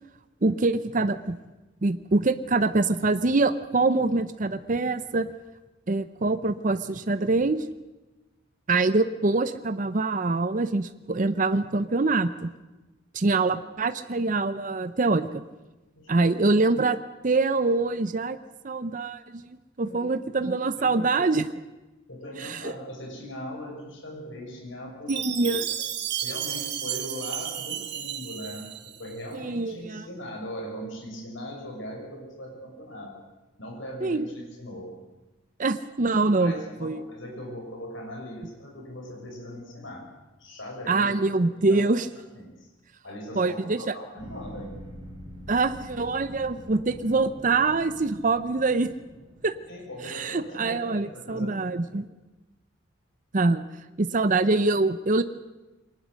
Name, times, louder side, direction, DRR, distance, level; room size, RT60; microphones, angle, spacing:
voice 1, 0.4-1.4 1.8-5.3 5.9-7.6 8.7-12.5 13.1-15.4 16.1-18.4 18.6-19.5 19.8-21.5 22.4-22.7 25.1-25.6 29.3-30.1 34.0-34.2 35.6-37.0 40.9-42.1 43.4-43.8 45.5-48.9 49.4-49.6 50.1-52.0 53.3-53.6 54.0-55.2, right 3 dB, 40° right, 12 dB, 0.7 m, -24 dB
voice 2, 20.8-21.2 22.1-25.6 26.2-33.1 33.6-34.9 36.4-40.1 40.4-41.1 41.6-42.0 42.3-42.7 43.0-44.9 49.7-51.8, equal, 70° left, 0 dB, 5.8 m, -40 dB
Chime, 25.1-29.2, right 10 dB, 55° right, 1.6 m, -33 dB
sound 1, 44.2-50.7, equal, 20° right, 6.0 m, -45 dB
23.0 x 19.5 x 6.4 m, 1.1 s
head